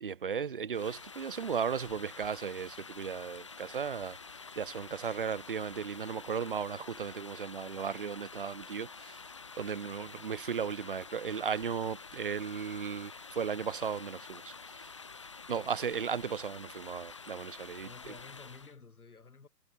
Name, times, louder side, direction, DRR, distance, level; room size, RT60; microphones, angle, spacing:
voice 1, 0.0-4.2 4.6-9.2 9.6-14.9 15.5-17.9, right 6 dB, 30° right, 0.9 m, -36 dB
sound 1, 0.7-18.8, left 4 dB, 20° left, 0.8 m, -48 dB
voice 2, 17.8-19.5, left 4 dB, 60° left, 4.5 m, -52 dB
figure-of-eight pair, 140°, 50 cm